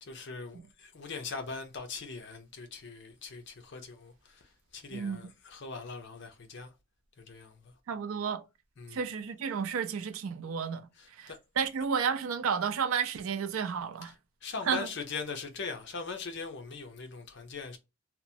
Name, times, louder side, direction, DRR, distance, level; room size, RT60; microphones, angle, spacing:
voice 1, 0.0-6.7 7.2-7.7 8.8-9.0 11.0-11.4 14.0-14.1 14.4-17.8, left 4 dB, 55° left, 0.6 m, -41 dB
voice 2, 7.9-8.4 8.9-10.9 11.2-14.1 14.7-14.9, right 6 dB, 75° right, 0.4 m, -32 dB
2.9 x 2.1 x 2.6 m
head